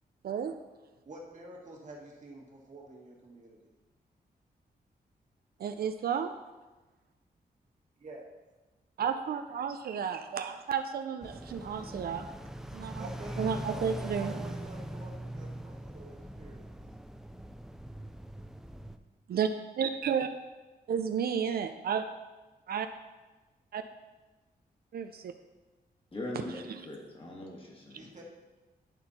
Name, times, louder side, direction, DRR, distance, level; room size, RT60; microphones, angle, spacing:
voice 1, 0.2-0.5 5.6-6.3 9.0-12.2 12.7-13.1 13.4-14.3 19.3-19.5 19.8-20.3 20.9-22.0 22.7-22.9 23.7-23.8 24.9-25.3 26.5-26.9, right 7 dB, 70° right, 8 dB, 0.4 m, -32 dB
voice 2, 1.0-3.7 8.0-8.2 12.9-16.7 27.9-28.2, right 2 dB, 50° right, -2 dB, 1.6 m, -48 dB
sound 1, 11.2-19.0, right 1 dB, 5° right, 0.3 m, -41 dB
voice 3, 26.1-28.1, left 1 dB, 35° left, -1 dB, 1.7 m, -41 dB
10.5 x 4.3 x 4.1 m, 1.2 s
wide cardioid pair, 120°, 16 cm